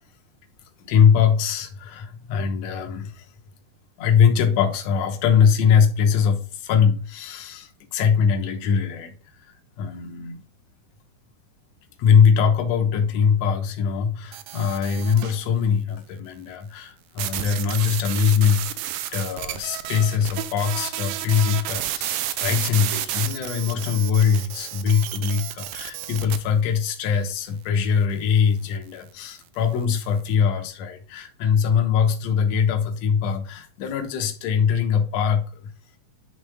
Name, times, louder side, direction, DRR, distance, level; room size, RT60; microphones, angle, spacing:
voice 1, 0.9-3.2 4.0-9.1 9.8-10.4 12.0-18.7 19.1-35.4, left 7 dB, 70° left, 1.7 m, -22 dB
sound 1, 14.3-15.4 17.2-26.4, right 13 dB, 80° right, 2.2 m, -31 dB
11.0 x 3.6 x 3.5 m
omnidirectional pair, 4.5 m